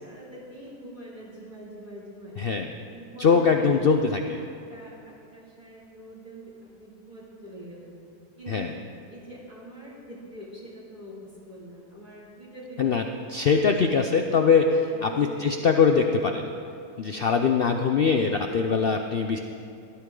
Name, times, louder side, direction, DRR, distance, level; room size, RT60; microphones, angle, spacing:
voice 1, 0.0-2.4 2.9-3.7 4.4-8.0 8.4-8.7 9.1-13.1 14.9-15.4, right 1 dB, 30° right, -8 dB, 3.3 m, -44 dB
voice 2, 2.4-2.7 3.2-4.4 8.5-8.7 12.8-13.0 13.3-16.5 17.0-19.4, left 5 dB, 75° left, 5 dB, 0.5 m, -22 dB
17.0 x 13.0 x 3.8 m, 2.5 s
omnidirectional pair, 1.7 m